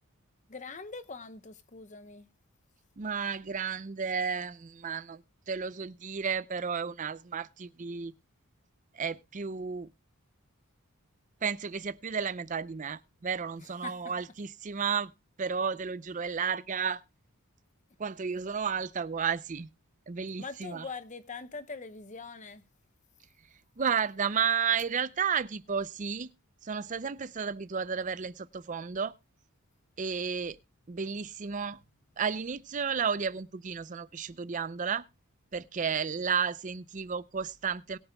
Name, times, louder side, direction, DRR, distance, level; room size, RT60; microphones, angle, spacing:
voice 1, 0.5-2.3 13.8-13.9 20.4-22.6, left 4 dB, 35° left, 0.8 m, -42 dB
voice 2, 3.0-8.1 8.9-9.9 11.4-15.1 15.4-17.0 18.0-19.7 20.1-20.9 23.8-26.3 26.6-29.1 30.0-30.6 30.9-31.8 32.2-35.0 35.5-38.0, right 6 dB, 35° right, 0.5 m, -32 dB
22.0 x 8.8 x 2.3 m
head